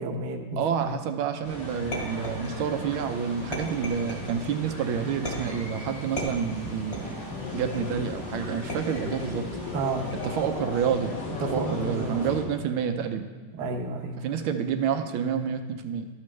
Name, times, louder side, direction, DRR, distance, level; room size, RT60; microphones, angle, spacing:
voice 1, 0.0-1.0 9.7-10.1 11.4-12.2 13.5-14.2, right 3 dB, 60° right, 2 dB, 1.3 m, -31 dB
voice 2, 0.6-7.1 7.5-9.5 10.1-11.1 11.4-13.3 14.2-16.1, right 7 dB, 80° right, 7 dB, 1.5 m, -29 dB
sound 1, 1.4-12.4, equal, 55° left, 3.3 m, -38 dB
sound 2, 1.9-2.9 3.5-4.4 5.3-5.7 6.2-7.2 7.7-8.1 8.7-9.4 10.1-10.6, equal, 30° left, 2.3 m, -36 dB
sound 3, 7.3-12.6, left 8 dB, 75° left, 1.1 m, -38 dB
13.0 x 7.3 x 3.2 m, 1.4 s
omnidirectional pair, 2.3 m